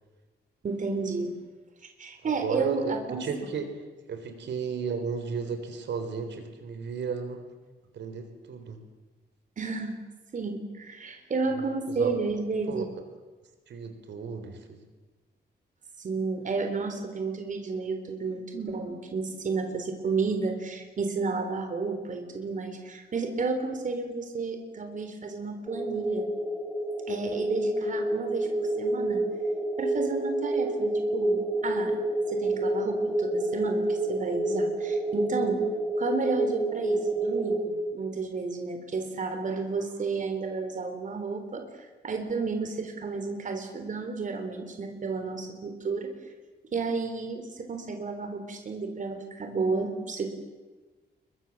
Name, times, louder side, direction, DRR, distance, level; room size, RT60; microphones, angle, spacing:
voice 1, 0.6-1.3 1.8-3.2 9.6-9.9 10.3-12.8 16.0-26.3 27.1-29.2 29.8-32.0 32.3-35.6 36.0-41.7 42.0-46.1 46.7-50.3, right 4 dB, 45° right, 5 dB, 3.8 m, -32 dB
voice 2, 2.2-3.7 4.1-7.4 7.9-8.8 12.0-12.1 12.7-12.9 13.7-14.8, right 6 dB, 80° right, 7 dB, 3.9 m, -34 dB
sound 1, 25.7-37.7, right 2 dB, ahead, 3.1 m, -28 dB
29.0 x 23.5 x 7.3 m, 1.3 s
wide cardioid pair, 145°, 18 cm